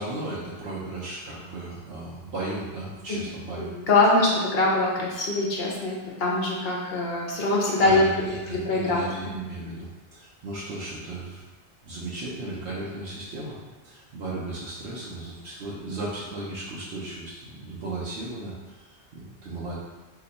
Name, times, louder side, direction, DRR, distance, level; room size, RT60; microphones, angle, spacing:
voice 1, 0.0-3.7 7.8-11.4 11.8-13.6 13.8-19.8, right 2 dB, 70° right, -7 dB, 0.9 m, -35 dB
voice 2, 3.6-9.0, left 2 dB, 65° left, -3 dB, 0.9 m, -23 dB
2.8 x 2.2 x 3.9 m, 1.2 s
omnidirectional pair, 1.2 m